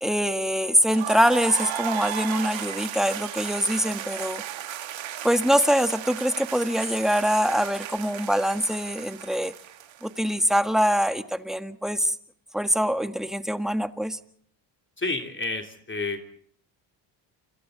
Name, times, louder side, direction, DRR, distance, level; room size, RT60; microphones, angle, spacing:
voice 1, 0.0-4.4 5.2-9.5 10.0-12.2 12.5-14.2, equal, ahead, 9 dB, 1.7 m, -24 dB
sound 1, 0.9-10.7, right 11 dB, 75° right, 1.9 m, -35 dB
voice 2, 15.0-16.2, left 3 dB, 25° left, 4 dB, 3.5 m, -30 dB
29.0 x 26.5 x 4.1 m, 0.64 s
cardioid pair, 80°, 46 cm